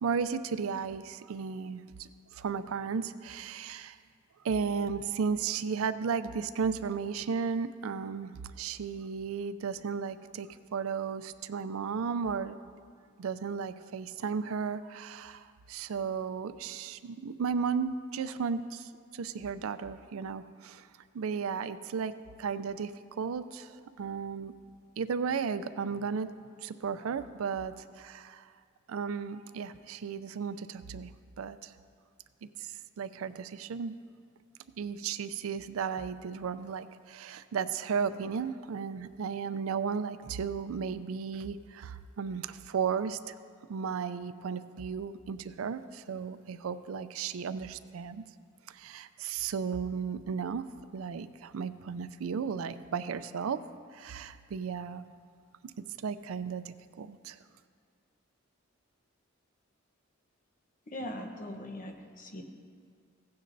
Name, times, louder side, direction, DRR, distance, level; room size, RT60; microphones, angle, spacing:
voice 1, 0.0-4.0 4.4-12.6 13.2-20.9 21.1-22.1 22.4-24.5 25.0-26.3 26.6-28.5 28.9-31.1 31.4-31.7 32.6-32.7 33.0-34.0 34.8-43.3 43.7-48.2 48.7-50.7 50.9-53.6 53.9-55.0 56.0-57.4, right 6 dB, 90° right, 13 dB, 0.4 m, -34 dB
voice 2, 60.9-62.4, left 1 dB, 40° left, 4 dB, 0.9 m, -40 dB
16.0 x 9.6 x 2.6 m, 2.1 s
head